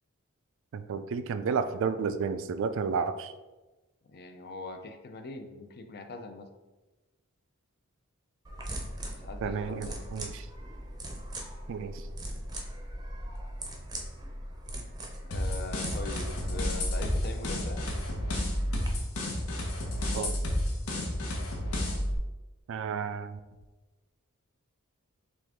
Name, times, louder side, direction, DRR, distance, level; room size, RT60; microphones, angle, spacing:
voice 1, 0.7-3.3 9.4-10.5 11.7-12.1 20.1-20.3 22.7-23.4, right 5 dB, 60° right, 11 dB, 0.3 m, -32 dB
voice 2, 4.1-6.5 9.1-10.0 15.2-17.8, left 3 dB, 45° left, 6 dB, 0.5 m, -42 dB
sound 1, 8.4-18.9, right 1 dB, 20° right, 0.6 m, -39 dB
sound 2, 15.3-22.2, left 1 dB, 80° left, 1.0 m, -31 dB
6.1 x 2.5 x 3.5 m, 1.1 s
head